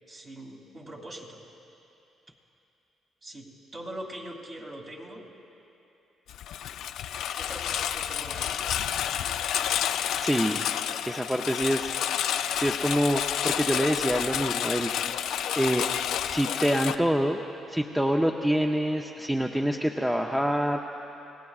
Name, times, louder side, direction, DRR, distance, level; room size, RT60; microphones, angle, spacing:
voice 1, 0.1-1.4 3.2-3.5 3.7-5.2 7.3-8.7, right 1 dB, 40° right, -1 dB, 2.8 m, -42 dB
Engine, 6.3-16.9, left 10 dB, 80° left, 0.4 m, -30 dB
voice 2, 10.2-10.6 11.1-11.9 12.5-14.9 15.6-15.9 16.2-17.4 17.7-20.8, equal, 5° right, 3 dB, 0.6 m, -26 dB
28.5 x 18.0 x 2.4 m, 2.9 s
cardioid pair, 90°, 0 cm